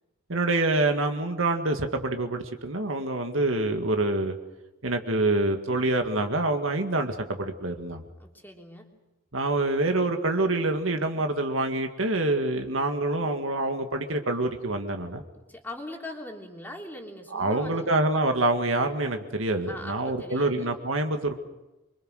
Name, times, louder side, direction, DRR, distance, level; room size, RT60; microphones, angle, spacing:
voice 1, 0.3-4.4 4.8-8.0 9.3-15.2 17.3-21.4, right 2 dB, 70° right, 5 dB, 2.1 m, -26 dB
voice 2, 8.2-8.9 15.4-17.9 19.7-20.7, left 1 dB, 10° left, 0 dB, 3.4 m, -41 dB
26.0 x 23.5 x 6.6 m, 1.0 s
head